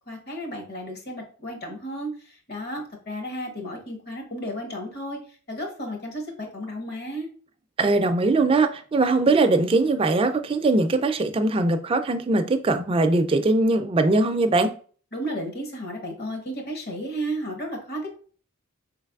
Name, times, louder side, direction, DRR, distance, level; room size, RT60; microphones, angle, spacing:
voice 1, 0.1-5.2 5.5-7.3 15.1-18.2, equal, 45° left, 1.1 m, -33 dB
voice 2, 7.8-14.7, right 2 dB, 25° right, 0.3 m, -21 dB
4.5 x 3.2 x 2.3 m
head